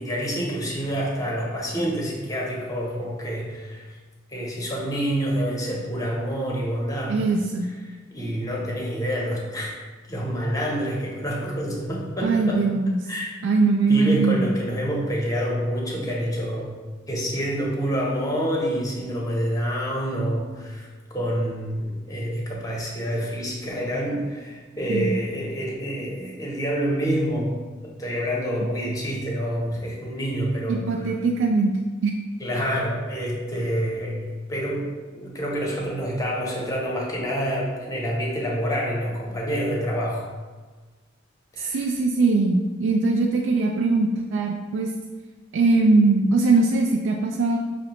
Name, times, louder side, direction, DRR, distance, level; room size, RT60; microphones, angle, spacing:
voice 1, 0.0-4.0 4.3-7.2 7.8-9.7 10.1-12.6 13.1-13.3 13.9-16.8 17.1-30.9 32.4-34.2 34.5-40.3 41.5-41.9, equal, 20° left, -3 dB, 0.7 m, -27 dB
voice 2, 7.1-7.7 12.2-13.0 13.4-14.5 24.9-25.1 30.7-31.7 32.0-32.1 41.6-44.9 45.5-47.6, right 3 dB, 65° right, 0 dB, 0.3 m, -21 dB
5.6 x 2.1 x 2.9 m, 1.3 s
head